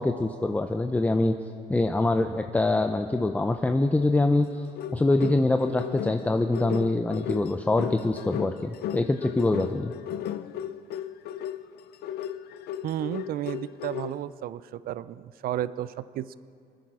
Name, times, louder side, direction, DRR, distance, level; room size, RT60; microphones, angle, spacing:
voice 1, 0.0-1.4 1.7-4.5 4.9-9.9, left 2 dB, 10° left, 7 dB, 0.5 m, -24 dB
sound 1, 4.4-14.2, left 10 dB, 70° left, 0.6 m, -35 dB
voice 2, 12.8-16.3, right 12 dB, 60° right, 16 dB, 0.5 m, -33 dB
26.0 x 10.0 x 4.9 m, 2.3 s
cardioid pair, 110°, 17 cm